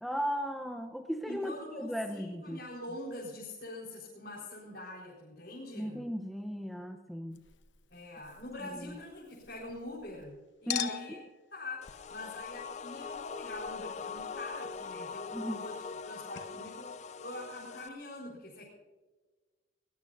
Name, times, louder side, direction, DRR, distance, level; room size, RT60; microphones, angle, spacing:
voice 1, 0.0-2.6 5.7-7.4 8.8-9.0 10.7-11.2 15.3-15.6, equal, ahead, 5 dB, 0.7 m, -36 dB
voice 2, 1.3-6.1 7.9-11.2 11.5-18.7, left 2 dB, 55° left, -5 dB, 4.4 m, -44 dB
Chink clink, 7.3-10.3 10.7-16.1 16.4-16.5, left 10 dB, 85° left, 1.0 m, -44 dB
sound 1, 11.8-17.9, left 5 dB, 35° left, 0.4 m, -42 dB
21.5 x 20.0 x 2.6 m, 1.3 s
head